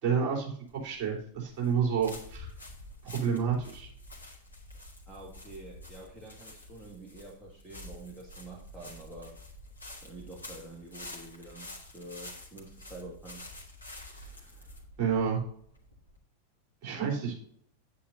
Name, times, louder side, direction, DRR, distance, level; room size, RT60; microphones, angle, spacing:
voice 1, 0.0-0.5 0.8-2.5 3.0-3.9 15.0-15.4 16.8-17.3, right 6 dB, 40° right, -1 dB, 3.5 m, -29 dB
sound 1, 0.7-16.2, left 2 dB, 80° left, 1.6 m, -48 dB
voice 2, 5.1-9.3 10.0-13.4, right 2 dB, 15° right, -3 dB, 1.7 m, -47 dB
9.1 x 8.4 x 2.6 m, 0.62 s
figure-of-eight pair, 90°, 0 cm